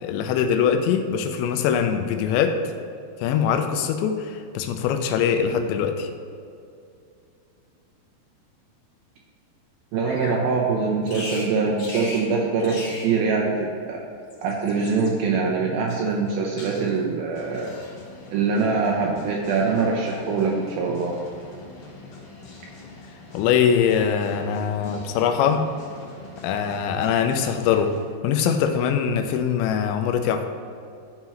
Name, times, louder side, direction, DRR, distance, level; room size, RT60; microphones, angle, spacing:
voice 1, 0.0-2.6 3.2-6.1 23.3-25.7 26.4-27.9 28.2-30.5, left 7 dB, 90° left, 6 dB, 2.9 m, -22 dB
voice 2, 9.9-14.0 14.4-17.7 18.3-21.2, right 4 dB, 85° right, -2 dB, 2.1 m, -23 dB
Bird vocalization bird call bird song, 10.0-10.4 11.1-11.5 11.8-12.3 12.6-13.1 14.1-15.1 15.9-16.3 16.6-17.1 17.5-17.9, left 2 dB, 50° left, 2.3 m, -37 dB
sound 1, 17.3-28.1, left 3 dB, 65° left, 1.7 m, -44 dB
12.5 x 5.6 x 3.0 m, 2.4 s
omnidirectional pair, 5.2 m